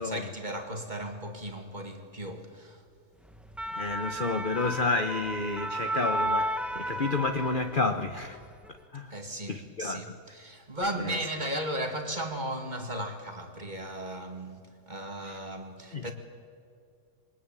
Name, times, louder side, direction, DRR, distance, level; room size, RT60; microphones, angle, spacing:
voice 1, 0.0-2.8 9.1-16.1, right 1 dB, 25° right, 2.4 m, -36 dB
sound 1, 3.3-8.1 8.4-8.7, equal, ahead, 0.6 m, -33 dB
voice 2, 3.8-8.4 8.9-9.1 9.5-10.1 11.0-11.2 15.2-15.4 15.9-16.1, left 3 dB, 35° left, 0.9 m, -30 dB
27.0 x 22.5 x 8.9 m
omnidirectional pair, 2.1 m